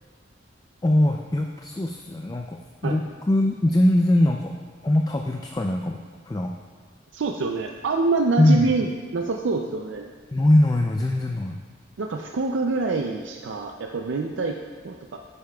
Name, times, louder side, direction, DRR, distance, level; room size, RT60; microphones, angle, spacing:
voice 1, 0.8-2.6 2.8-3.0 3.3-4.5 4.8-6.0 6.3-6.5 8.4-8.7 10.3-11.6, left 1 dB, 20° left, 2 dB, 0.4 m, -21 dB
voice 2, 7.1-10.1 12.0-15.2, right 3 dB, 80° right, 3 dB, 0.5 m, -26 dB
10.5 x 9.7 x 2.3 m, 1.5 s
head